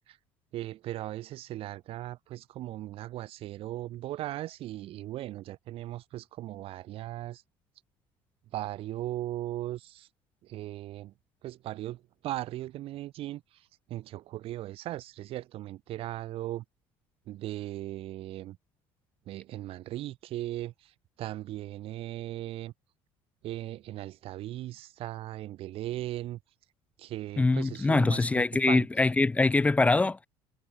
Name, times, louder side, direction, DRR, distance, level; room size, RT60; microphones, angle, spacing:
voice 1, 0.5-7.4 8.5-10.1 10.4-11.1 11.4-16.6 17.3-18.6 19.3-20.9 21.2-22.7 23.4-26.4 27.0-28.9, right 15 dB, 55° right, 5.8 m, -38 dB
voice 2, 27.4-30.3, left 3 dB, 10° left, 1.8 m, -24 dB
cardioid pair, 150°, 12 cm